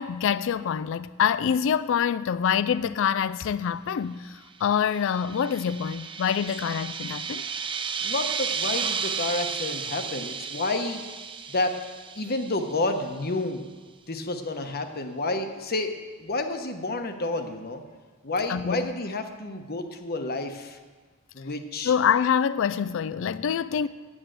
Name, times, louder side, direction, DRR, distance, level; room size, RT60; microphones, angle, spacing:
voice 1, 0.0-7.4 18.5-18.9 21.8-23.9, left 8 dB, 65° left, 0.3 m, -25 dB
sound 1, 4.7-13.0, right 6 dB, 25° right, 0.4 m, -33 dB
voice 2, 8.0-11.0 11.5-11.8 12.2-13.6 14.1-15.9 16.2-17.8 18.2-20.8 21.3-21.9, left 2 dB, 45° left, 1.1 m, -30 dB
9.8 x 8.9 x 7.8 m
head